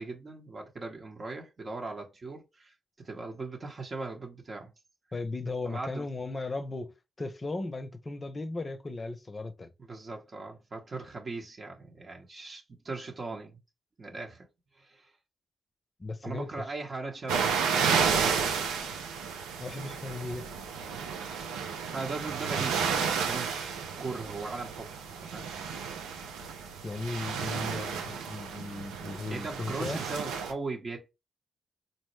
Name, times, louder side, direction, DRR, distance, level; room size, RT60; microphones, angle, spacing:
voice 1, 0.0-2.7 3.0-4.7 5.6-6.1 9.8-13.6 14.0-14.5 14.7-15.1 16.2-17.6 17.9-18.5 21.9-25.5 29.3-31.1, right 3 dB, 45° right, 0.9 m, -39 dB
voice 2, 5.1-6.9 7.2-9.7 16.0-16.7 19.6-20.4 26.8-30.0, left 3 dB, 35° left, 0.6 m, -36 dB
sound 1, 17.3-30.5, right 6 dB, 90° right, 0.5 m, -32 dB
4.1 x 2.1 x 3.1 m
supercardioid pair, 45°, 0 cm